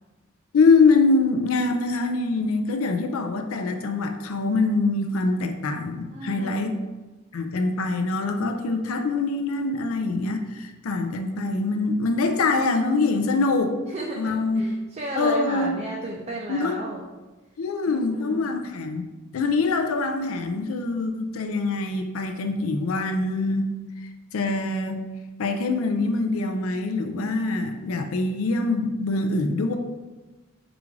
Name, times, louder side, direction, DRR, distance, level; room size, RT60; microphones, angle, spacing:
voice 1, 0.5-6.8 7.3-13.8 14.2-14.6 15.2-15.8 16.5-16.8 17.6-19.0 19.3-23.7 24.3-25.0 25.4-29.8, left 3 dB, 85° left, 5 dB, 0.5 m, -24 dB
voice 2, 6.1-6.6 13.9-17.0 17.9-18.5, right 2 dB, 30° right, -1 dB, 0.3 m, -34 dB
4.9 x 2.5 x 3.1 m, 1.2 s
head